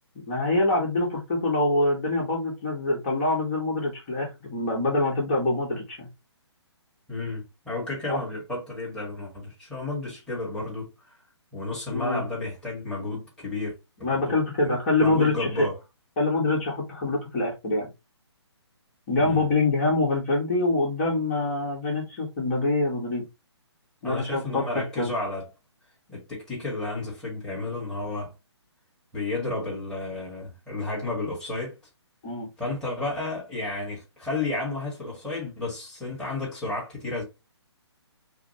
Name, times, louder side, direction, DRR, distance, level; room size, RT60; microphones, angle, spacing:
voice 1, 0.2-6.1 8.1-8.2 11.9-12.2 14.0-15.7 16.2-17.9 19.1-23.2 24.0-25.1 32.2-32.5, left 2 dB, 30° left, 1.8 m, -25 dB
voice 2, 7.1-10.9 11.5-14.4 14.6-15.8 19.2-19.5 24.0-25.5 26.1-28.3 29.1-31.8 32.6-37.2, left 2 dB, 5° left, 1.9 m, -32 dB
5.7 x 2.4 x 2.8 m
figure-of-eight pair, 145°, 15 cm